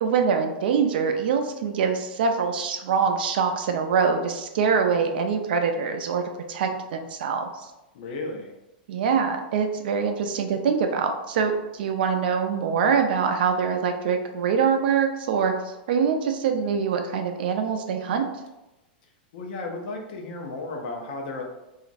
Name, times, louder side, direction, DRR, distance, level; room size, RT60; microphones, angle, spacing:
voice 1, 0.0-7.7 8.9-18.3, right 6 dB, 70° right, 5 dB, 0.4 m, -24 dB
voice 2, 7.9-8.5 19.3-21.4, left 2 dB, 60° left, 2 dB, 0.6 m, -34 dB
3.0 x 2.4 x 2.5 m, 0.97 s
hypercardioid pair, 135°, 5 cm